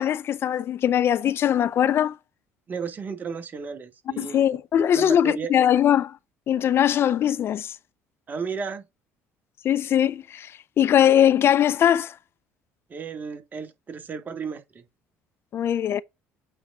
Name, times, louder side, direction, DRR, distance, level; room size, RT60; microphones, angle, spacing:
voice 1, 0.0-2.2 4.2-6.2 6.5-7.7 9.6-12.2 15.5-16.0, left 10 dB, 50° left, 0.5 m, -21 dB
voice 2, 2.7-4.5 4.9-5.5 8.3-8.9 12.9-14.9, right 5 dB, 35° right, 2.2 m, -33 dB
8.8 x 4.0 x 3.7 m
supercardioid pair, 85°, 5 cm